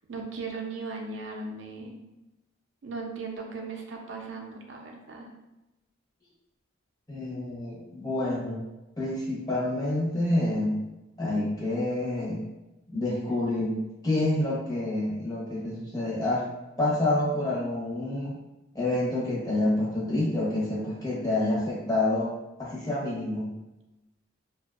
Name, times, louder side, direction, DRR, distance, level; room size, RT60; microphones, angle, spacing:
voice 1, 0.1-2.0 2.8-5.3, right 4 dB, 75° right, 1 dB, 0.4 m, -37 dB
voice 2, 7.1-8.6 9.0-10.8 11.2-12.4 12.9-13.8 14.0-16.4 16.8-18.3 18.7-22.3 22.6-23.5, left 1 dB, 20° left, -6 dB, 0.7 m, -28 dB
2.5 x 2.2 x 2.3 m, 0.99 s
head